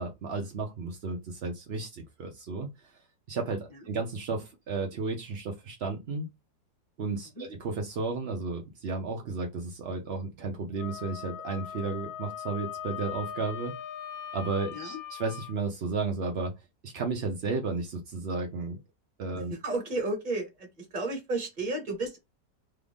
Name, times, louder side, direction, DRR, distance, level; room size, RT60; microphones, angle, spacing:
voice 1, 0.0-2.9 3.3-6.3 7.0-13.8 14.3-16.5 16.8-18.8 19.2-19.5, right 4 dB, 65° right, 0.6 m, -33 dB
Wind instrument woodwind instrument, 10.8-15.5, left 9 dB, 80° left, 0.5 m, -40 dB
voice 2, 19.5-22.2, right 2 dB, 30° right, 1.2 m, -33 dB
3.4 x 2.4 x 3.5 m
omnidirectional pair, 1.9 m